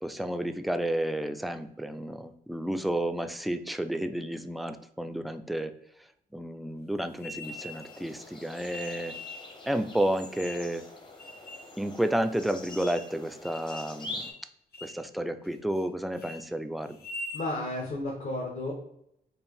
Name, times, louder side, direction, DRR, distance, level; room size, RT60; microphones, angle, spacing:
voice 1, 0.0-5.7 6.3-9.2 9.7-10.8 11.8-14.2 14.8-17.0, right 1 dB, ahead, 8 dB, 0.3 m, -31 dB
sound 1, 7.2-8.0 8.7-9.5 10.0-10.7 11.2-11.7 12.1-12.2 12.7-13.1 13.4-14.0 14.2-14.4 14.7-15.0 15.4-15.9 16.1-16.4 16.9-17.5, left 1 dB, 75° left, 0.8 m, -43 dB
sound 2, 7.4-14.3, left 2 dB, 30° left, 0.8 m, -45 dB
voice 2, 17.3-18.7, left 2 dB, 55° left, -3 dB, 1.1 m, -32 dB
4.4 x 2.5 x 3.4 m, 0.75 s
cardioid pair, 95°, 17 cm